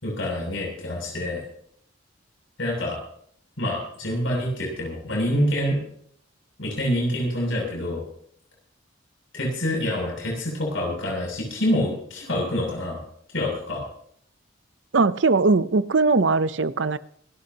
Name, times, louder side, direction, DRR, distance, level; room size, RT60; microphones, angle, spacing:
voice 1, 0.0-1.4 2.6-3.0 3.6-5.8 6.6-8.0 9.3-13.0 13.3-13.9, left 1 dB, 75° left, -1 dB, 7.6 m, -26 dB
voice 2, 14.9-17.0, right 3 dB, 65° right, 15 dB, 0.7 m, -20 dB
27.5 x 13.0 x 2.9 m, 0.66 s
head